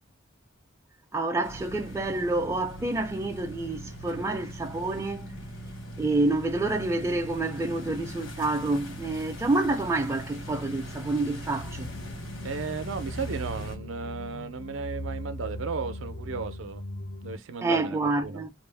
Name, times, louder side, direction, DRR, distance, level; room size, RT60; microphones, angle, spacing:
voice 1, 1.1-5.4 6.0-11.9 17.6-18.5, right 2 dB, 15° right, 0.4 m, -28 dB
sound 1, 1.4-13.7, equal, 85° left, 1.1 m, -40 dB
sound 2, 11.6-17.4, left 1 dB, 50° left, 0.5 m, -39 dB
voice 2, 12.4-16.8 17.2-18.4, right 5 dB, 70° right, 0.5 m, -35 dB
2.4 x 2.0 x 3.2 m
head